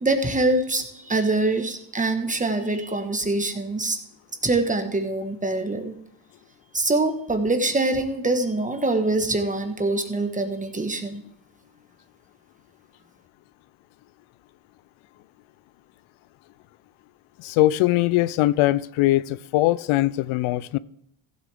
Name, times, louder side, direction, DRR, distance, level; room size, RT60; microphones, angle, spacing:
voice 1, 0.0-4.0 4.4-5.9 6.7-11.2, right 2 dB, 15° right, 1.4 m, -24 dB
voice 2, 17.4-20.8, left 16 dB, 85° left, 0.5 m, -21 dB
15.5 x 8.0 x 3.5 m
cardioid pair, 105°, 47 cm